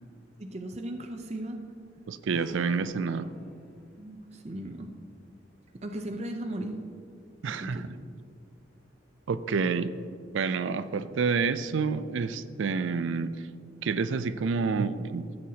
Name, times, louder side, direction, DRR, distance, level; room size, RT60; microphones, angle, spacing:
voice 1, 0.4-1.6 4.0-4.9 5.8-6.7 7.5-7.9, right 1 dB, 35° right, 4 dB, 0.5 m, -37 dB
voice 2, 2.1-3.3 7.4-7.8 9.3-10.0 10.3-13.5 13.8-15.3, right 5 dB, 85° right, 13 dB, 0.4 m, -28 dB
sound 1, 2.3-4.3, equal, 5° left, 1.1 m, -53 dB
14.0 x 7.9 x 2.8 m, 2.2 s
head